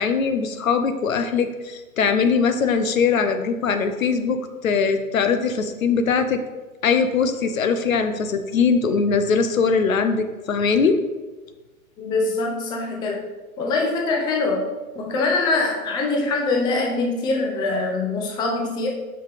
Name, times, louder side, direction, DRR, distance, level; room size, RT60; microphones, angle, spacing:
voice 1, 0.0-6.4 6.8-11.0, left 5 dB, 70° left, 8 dB, 0.8 m, -21 dB
voice 2, 12.0-13.2 13.6-14.6 14.9-18.9, left 3 dB, 10° left, 1 dB, 0.5 m, -23 dB
6.4 x 5.6 x 3.5 m, 1.2 s
figure-of-eight pair, 115°, 42 cm